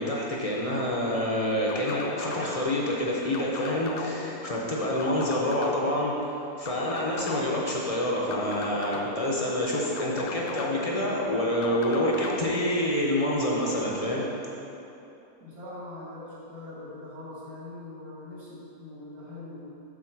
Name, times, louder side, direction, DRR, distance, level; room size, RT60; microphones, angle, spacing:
voice 1, 0.0-6.3 6.6-14.3, left 1 dB, 45° left, -3 dB, 0.4 m, -27 dB
sound 1, 1.7-2.7 3.3-4.4 5.0-6.0 6.6-7.7 8.3-9.4 10.0-11.0 11.6-12.5, left 5 dB, 70° left, 1.0 m, -36 dB
voice 2, 15.4-19.7, left 2 dB, 65° right, -7 dB, 2.2 m, -42 dB
7.3 x 3.8 x 5.9 m, 2.9 s
omnidirectional pair, 1.7 m